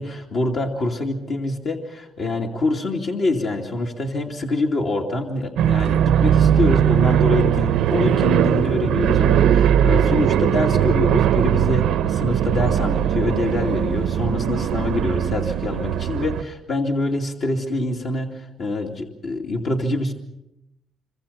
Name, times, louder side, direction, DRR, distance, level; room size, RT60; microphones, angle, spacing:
voice 1, 0.0-20.1, left 2 dB, 60° left, -1 dB, 2.7 m, -25 dB
sound 1, 5.6-16.4, right 10 dB, 85° right, 0.8 m, -19 dB
26.5 x 25.0 x 5.8 m, 0.88 s
cardioid pair, 90°, 0 cm